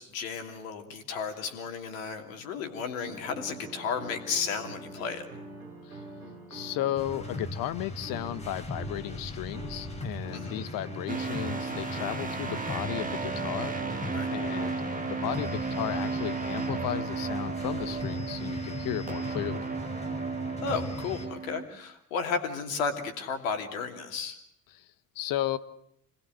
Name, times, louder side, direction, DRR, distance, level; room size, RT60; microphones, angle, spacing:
voice 1, 0.0-5.3 10.3-10.6 14.1-14.3 20.6-24.4, left 5 dB, 70° left, 5 dB, 3.0 m, -33 dB
sound 1, 3.0-14.7, right 2 dB, 80° right, 2.9 m, -45 dB
voice 2, 6.5-13.8 14.3-19.7 24.7-24.9 25.1-25.6, left 13 dB, 55° left, 14 dB, 1.3 m, -34 dB
sound 2, 7.0-21.3, left 1 dB, 15° left, 4.9 m, -39 dB
sound 3, 11.1-21.6, right 4 dB, 20° right, 2.7 m, -34 dB
27.0 x 20.0 x 8.0 m, 0.75 s
figure-of-eight pair, 55°, 42 cm